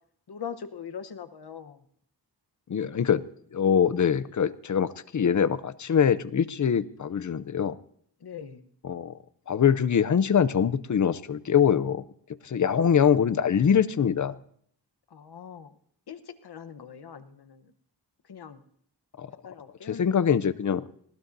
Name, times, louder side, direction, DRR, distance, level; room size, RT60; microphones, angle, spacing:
voice 1, 0.3-1.8 8.2-8.7 15.1-15.8 16.1-17.7 18.3-18.6 19.4-20.1, left 7 dB, 70° left, 10 dB, 1.0 m, -41 dB
voice 2, 2.7-3.3 3.5-7.8 8.8-9.1 9.5-12.0 12.4-14.4 19.2-19.3 19.9-20.8, left 8 dB, 45° left, 16 dB, 0.5 m, -23 dB
19.5 x 18.0 x 2.7 m, 0.63 s
wide cardioid pair, 145°, 41 cm